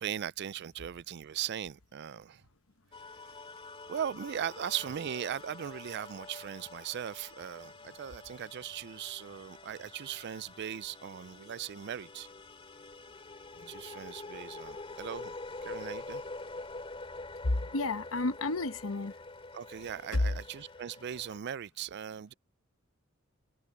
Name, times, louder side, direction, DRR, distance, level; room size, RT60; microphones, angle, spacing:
voice 1, 0.0-2.5 3.9-12.3 13.7-15.3 15.6-16.2 19.5-22.3, right 9 dB, 55° right, 0.4 m, -39 dB
sound 1, 2.9-21.4, left 2 dB, 25° left, 2.5 m, -46 dB
voice 2, 17.4-19.1 20.1-20.2, left 2 dB, 80° left, 1.0 m, -31 dB
head